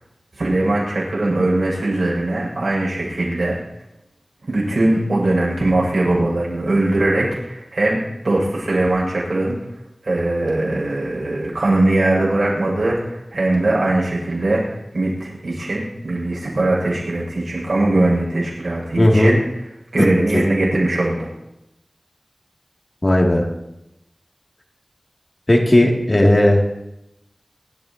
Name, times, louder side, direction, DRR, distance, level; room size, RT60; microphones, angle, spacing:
voice 1, 0.4-3.6 4.5-8.0 8.2-9.6 10.0-14.6 14.9-19.4 19.9-21.3, right 2 dB, 80° right, -4 dB, 7.2 m, -20 dB
voice 2, 19.0-19.3 20.0-20.1 20.3-20.4 23.0-23.4 25.5-26.6, left 1 dB, 40° left, -1 dB, 2.8 m, -14 dB
25.5 x 13.0 x 3.0 m, 0.86 s
wide cardioid pair, 55°, 0 cm